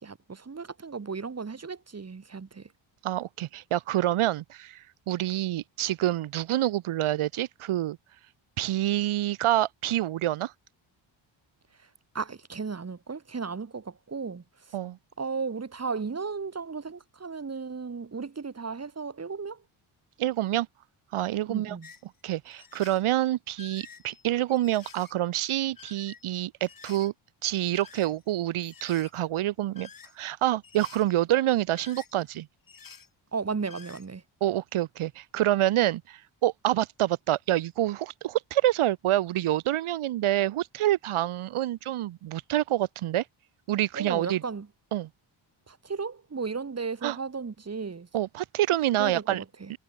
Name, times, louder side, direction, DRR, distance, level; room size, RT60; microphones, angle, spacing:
voice 1, 0.0-2.7 12.1-14.8 15.2-19.6 21.5-21.9 33.3-34.2 43.9-44.7 45.7-48.1 49.0-49.7, right 5 dB, 30° right, 5.4 m, -35 dB
voice 2, 3.0-8.0 8.6-10.5 14.7-15.0 20.2-20.7 21.1-21.8 22.2-27.1 27.4-29.9 30.2-32.5 34.4-43.2 43.7-44.4 44.9-45.1 47.0-47.2 48.1-49.4, right 14 dB, 85° right, 3.6 m, -27 dB
sound 1, 21.8-22.0 22.4-23.2 23.5-25.1 25.6-26.3 26.6-27.1 27.6-28.3 28.6-29.2 29.7-30.3 30.6-31.1 31.5-32.3 32.7-33.1 33.4-34.1, left 6 dB, 45° left, 7.2 m, -50 dB
cardioid pair, 100°, 48 cm